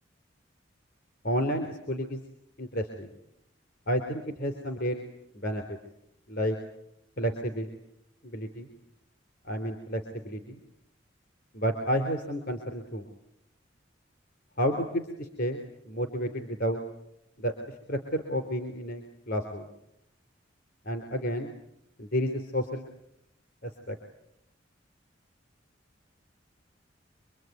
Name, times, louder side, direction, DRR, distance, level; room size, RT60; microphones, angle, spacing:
voice 1, 1.2-2.2 2.6-3.1 3.9-5.0 5.3-5.8 6.3-6.6 7.2-7.7 8.2-8.7 9.4-10.6 11.5-13.1 14.6-16.8 17.4-17.5 17.9-19.7 20.9-21.5 22.0-22.9 23.6-24.0, equal, 60° left, 4 dB, 3.7 m, -31 dB
27.0 x 23.0 x 9.4 m, 0.80 s
head